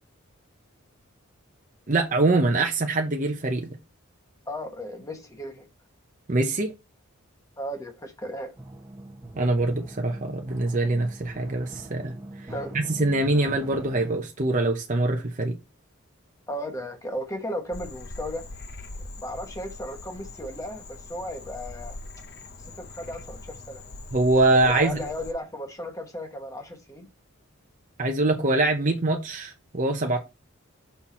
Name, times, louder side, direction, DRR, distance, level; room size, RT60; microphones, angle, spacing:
voice 1, 1.9-3.8 6.3-6.7 9.4-12.1 12.4-15.6 24.1-24.9 28.0-30.2, right 2 dB, 35° right, 0.7 m, -24 dB
voice 2, 4.5-5.7 7.6-8.5 12.5-12.7 16.5-18.4 19.2-22.0 22.8-23.8 24.6-27.1, equal, 15° left, 1.1 m, -35 dB
sound 1, 8.6-14.2, right 1 dB, 15° right, 1.0 m, -42 dB
Frog, 17.7-25.3, left 2 dB, 50° left, 0.9 m, -42 dB
5.8 x 4.4 x 4.3 m
head